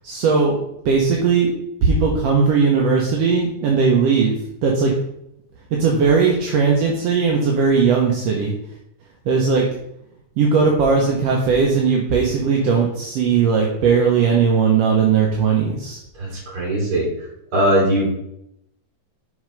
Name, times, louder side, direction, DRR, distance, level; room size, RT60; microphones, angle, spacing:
voice 1, 0.0-0.6 0.9-1.5 1.8-4.3 4.6-4.9 5.8-8.5 9.3-9.7 10.4-16.0, right 5 dB, 65° right, 0 dB, 1.7 m, -18 dB
voice 2, 16.2-17.1 17.5-18.2, right 1 dB, 40° right, -3 dB, 4.0 m, -20 dB
6.5 x 4.4 x 5.2 m, 0.77 s
omnidirectional pair, 3.7 m